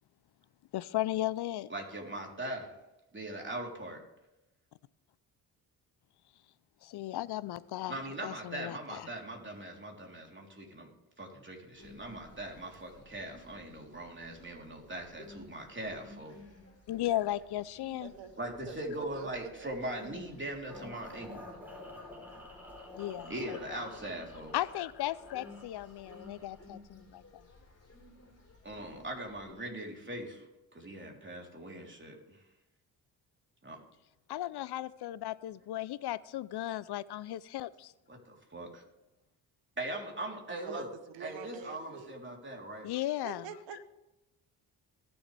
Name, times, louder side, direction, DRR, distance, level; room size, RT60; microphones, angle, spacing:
voice 1, 0.7-1.7 6.8-8.0 8.2-9.1 16.9-18.1 22.9-23.8 24.5-27.4 34.3-37.9 42.8-43.4, left 14 dB, 60° left, 19 dB, 0.6 m, -36 dB
voice 2, 1.7-2.7 3.1-4.0 7.9-10.9 11.2-16.4 18.4-21.4 23.3-24.5 28.6-30.5 30.7-32.4 33.6-33.8 38.1-38.8 39.8-40.9 41.2-42.9, right 1 dB, 25° right, 0 dB, 3.6 m, -41 dB
sound 1, 11.8-29.5, left 2 dB, 30° left, 4.4 m, -55 dB
voice 3, 18.0-18.3 18.7-20.1 40.5-40.9 41.1-42.1 43.2-43.8, right 8 dB, 75° right, 12 dB, 1.1 m, -46 dB
sound 2, 20.7-26.6, left 2 dB, 5° right, 4.2 m, -50 dB
18.5 x 7.2 x 3.4 m, 0.99 s
hypercardioid pair, 45°, 45 cm